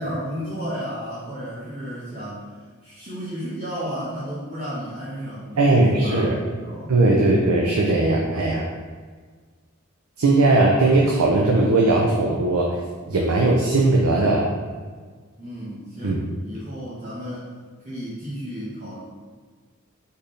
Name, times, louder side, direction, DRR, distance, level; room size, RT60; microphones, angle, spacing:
voice 1, 0.0-2.4 2.8-7.5 15.4-17.5 17.8-19.0, equal, 35° right, -10 dB, 1.1 m, -33 dB
voice 2, 5.6-6.3 6.9-8.6 10.2-12.8 13.1-14.5 16.0-16.2, right 2 dB, 90° right, -2 dB, 0.6 m, -18 dB
4.4 x 3.5 x 3.2 m, 1.6 s
head